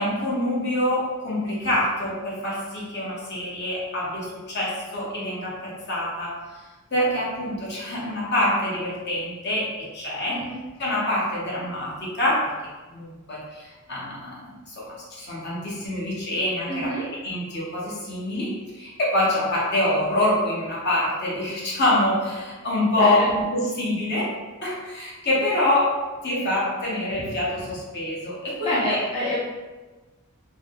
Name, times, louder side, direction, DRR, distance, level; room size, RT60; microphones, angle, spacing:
voice 1, 0.0-6.4 6.9-10.4 10.8-12.6 12.9-16.9 17.2-29.0, left 1 dB, 55° left, -5 dB, 1.0 m, -26 dB
voice 2, 10.3-10.6 16.7-17.1 23.0-23.3 28.6-29.4, equal, 30° left, -9 dB, 0.7 m, -26 dB
3.4 x 2.1 x 3.6 m, 1.2 s
head